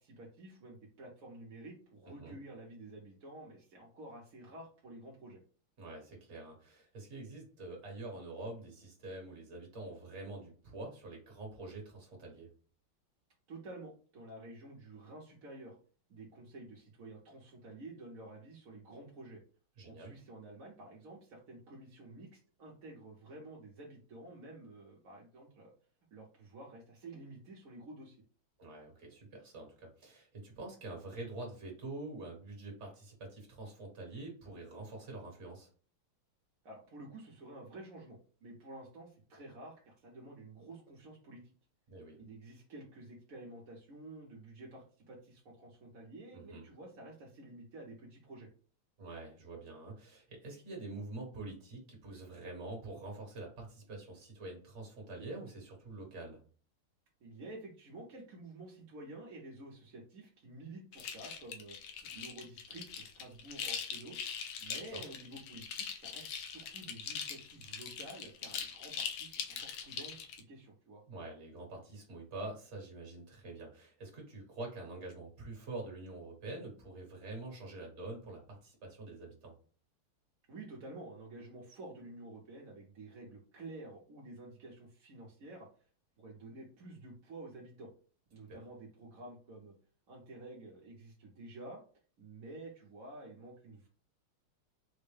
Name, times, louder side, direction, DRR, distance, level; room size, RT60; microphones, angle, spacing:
voice 1, 0.0-5.4 13.5-15.8 16.1-19.4 19.8-25.7 26.1-28.2 36.6-41.4 42.2-48.5 57.2-61.8 62.1-64.2 64.6-71.0 80.5-85.7 86.2-87.9 88.3-89.7 90.1-91.8 92.2-93.9, right 2 dB, 60° right, -4 dB, 0.9 m, -50 dB
voice 2, 5.8-12.5 19.8-20.1 28.6-35.7 41.9-42.2 46.3-46.6 49.0-56.4 64.7-65.1 71.1-79.5 88.5-88.6, right 2 dB, 40° right, 0 dB, 1.3 m, -46 dB
sound 1, 60.9-70.4, left 7 dB, 75° left, 1.3 m, -42 dB
4.4 x 2.1 x 3.2 m, 0.42 s
omnidirectional pair, 2.3 m